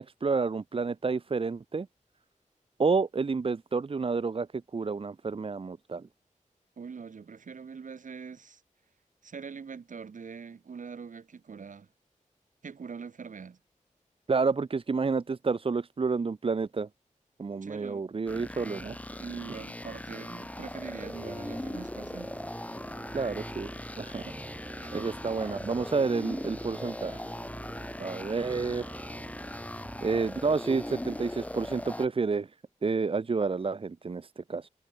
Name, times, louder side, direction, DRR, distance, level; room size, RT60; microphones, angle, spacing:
voice 1, 0.0-1.9 2.8-6.1 14.3-16.9 17.4-19.0 23.1-24.3 24.9-27.2 28.0-28.8 30.0-32.5 32.8-34.7, right 4 dB, 45° right, 1.1 m, -30 dB
voice 2, 6.8-8.6 9.2-11.9 12.6-13.6 17.6-18.1 18.8-22.3 24.8-25.2, right 5 dB, 75° right, 5.6 m, -43 dB
sound 1, 18.3-32.1, left 1 dB, 10° left, 1.8 m, -39 dB
sound 2, 21.1-31.1, right 2 dB, 25° right, 6.9 m, -47 dB
wide cardioid pair, 125°, 13 cm